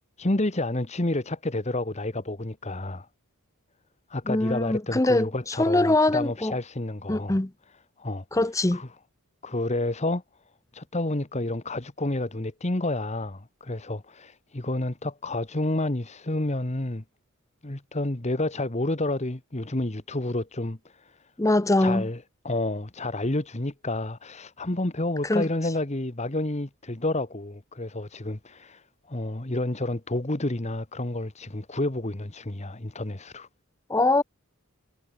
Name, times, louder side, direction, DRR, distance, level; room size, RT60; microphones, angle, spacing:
voice 1, 0.2-3.1 4.1-7.4 8.0-8.2 8.7-8.9 9.4-10.2 10.7-17.0 17.6-21.2 21.8-33.5, left 2 dB, 30° left, 1.4 m, -30 dB
voice 2, 4.3-6.5 7.1-7.5 8.3-8.8 21.4-22.1 25.2-25.5 33.9-34.2, left 2 dB, 15° left, 0.6 m, -23 dB
head